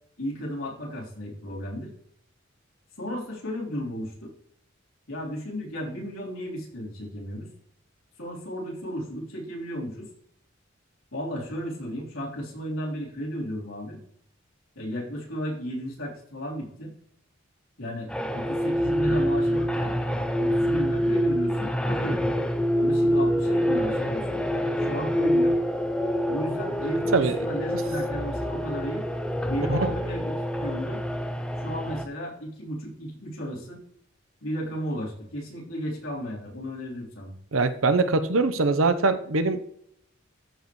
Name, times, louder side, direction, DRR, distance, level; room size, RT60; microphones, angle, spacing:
voice 1, 0.2-1.9 3.0-4.3 5.1-7.5 8.2-10.1 11.1-14.0 14.8-16.9 17.8-19.9 20.4-22.3 22.7-24.4 24.8-25.6 26.3-29.0 29.4-31.0 31.6-33.8 34.4-37.3, equal, 90° left, -4 dB, 3.6 m, -34 dB
sound 1, 18.1-32.0, equal, 5° left, 0.6 m, -26 dB
voice 2, 37.5-39.7, right 3 dB, 80° right, 10 dB, 0.8 m, -22 dB
13.5 x 5.2 x 3.1 m, 0.69 s
head